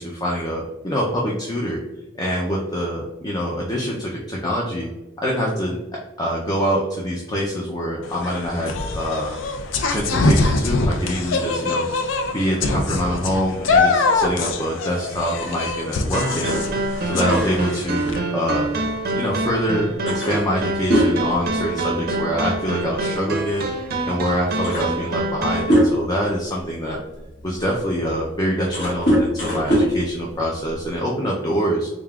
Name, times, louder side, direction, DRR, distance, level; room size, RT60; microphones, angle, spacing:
voice 1, 0.0-1.8 2.1-4.9 5.2-5.8 6.2-9.4 9.9-11.9 12.2-16.6 17.0-18.7 19.1-19.9 20.3-23.7 24.0-27.0 27.4-31.9, equal, 20° left, -3 dB, 0.5 m, -25 dB
sound 1, 8.0-18.2, left 3 dB, 85° left, 0.4 m, -23 dB
sound 2, 16.1-25.7, right 2 dB, 55° right, 0.5 m, -26 dB
sound 3, 16.3-19.3 19.6-19.7 20.1-22.2 22.5-22.8 23.8-23.9 24.3-26.3 26.9-30.9, equal, 60° left, 1.3 m, -23 dB
3.6 x 3.6 x 2.3 m, 1.1 s
head